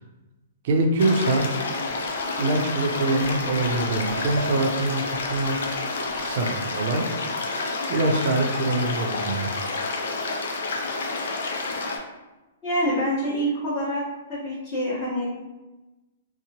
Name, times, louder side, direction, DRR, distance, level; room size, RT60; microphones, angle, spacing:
voice 1, 0.6-1.5 2.4-5.6 6.1-7.1 7.5-9.6, right 2 dB, 50° right, 2 dB, 0.5 m, -24 dB
sound 1, 1.0-12.0, left 3 dB, 75° left, 0.4 m, -29 dB
voice 2, 12.6-14.0 14.3-15.2, equal, 30° left, -12 dB, 1.1 m, -26 dB
2.8 x 2.1 x 2.8 m, 1.1 s
hypercardioid pair, 155°, 0 cm